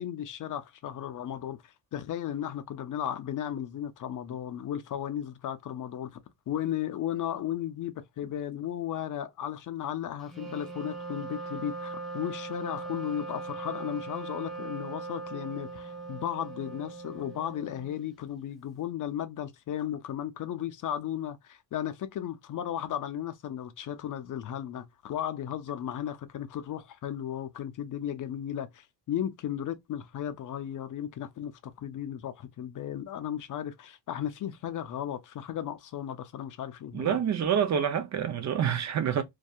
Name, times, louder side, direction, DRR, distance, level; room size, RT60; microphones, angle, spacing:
voice 1, 0.0-6.2 6.5-37.2, left 10 dB, 45° left, 0.5 m, -35 dB
Wind instrument woodwind instrument, 10.3-18.1, right 3 dB, ahead, 0.7 m, -40 dB
voice 2, 36.9-39.2, right 8 dB, 40° right, 0.5 m, -27 dB
2.6 x 2.3 x 2.2 m
cardioid pair, 95°, 43 cm